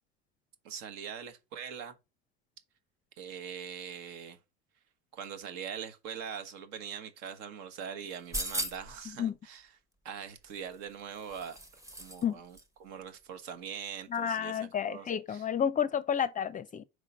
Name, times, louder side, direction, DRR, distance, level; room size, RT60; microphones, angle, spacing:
voice 1, 0.6-2.0 3.2-4.4 5.1-9.7 10.0-11.6 12.0-15.4, right 7 dB, 60° right, 1.3 m, -42 dB
sound 1, 8.1-9.0 10.5-12.2 12.5-12.6, right 1 dB, 10° right, 0.9 m, -38 dB
voice 2, 14.1-16.8, left 8 dB, 25° left, 0.5 m, -31 dB
4.9 x 3.8 x 5.2 m
hypercardioid pair, 85°, 30 cm